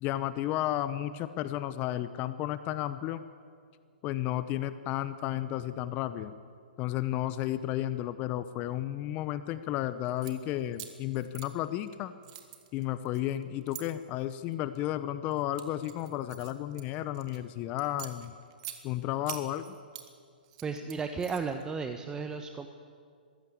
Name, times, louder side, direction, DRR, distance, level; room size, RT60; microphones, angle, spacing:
voice 1, 0.0-3.2 4.0-6.3 6.8-12.1 12.7-18.3 18.8-19.8, left 13 dB, 30° left, 13 dB, 0.8 m, -33 dB
sound 1, 10.0-10.3 10.7-11.9 12.2-13.8 14.5-14.8 15.3-17.4 17.8-18.8 19.3-20.1 20.4-21.6, right 14 dB, 40° right, 2.2 m, -45 dB
voice 2, 20.6-22.7, right 5 dB, 15° right, 7 dB, 1.0 m, -34 dB
22.5 x 15.5 x 8.4 m, 2.2 s
hypercardioid pair, 125°, 5 cm